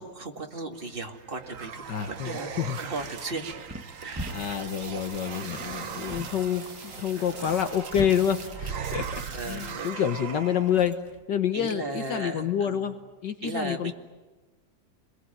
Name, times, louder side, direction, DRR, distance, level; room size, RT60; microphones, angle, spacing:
voice 1, 0.0-2.5 2.8-3.4 3.8-4.4 9.3-9.9 11.5-12.9 13.4-13.9, right 2 dB, 30° right, 3 dB, 2.3 m, -36 dB
sound 1, 0.9-10.9, right 7 dB, 50° right, 1.3 m, -39 dB
voice 2, 1.9-2.8 4.3-11.0 11.3-13.9, left 9 dB, 70° left, 8 dB, 1.7 m, -28 dB
sound 2, 2.9-11.2, right 1 dB, 5° right, 1.6 m, -44 dB
sound 3, 4.2-8.5 8.7-9.9, right 3 dB, 75° right, 4.9 m, -45 dB
27.0 x 21.5 x 9.3 m, 1.2 s
omnidirectional pair, 2.0 m